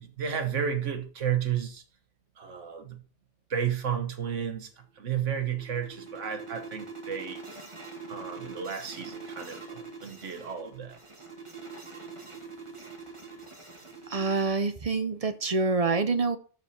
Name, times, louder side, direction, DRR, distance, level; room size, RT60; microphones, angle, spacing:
voice 1, 0.0-1.8 2.4-3.0 3.5-4.7 5.0-7.4 8.1-11.0, right 8 dB, 80° right, 1.5 m, -32 dB
sound 1, 5.0-14.5, right 4 dB, 25° right, 1.7 m, -44 dB
voice 2, 14.1-16.4, right 3 dB, 40° right, 0.6 m, -26 dB
12.5 x 4.6 x 4.3 m
omnidirectional pair, 1.2 m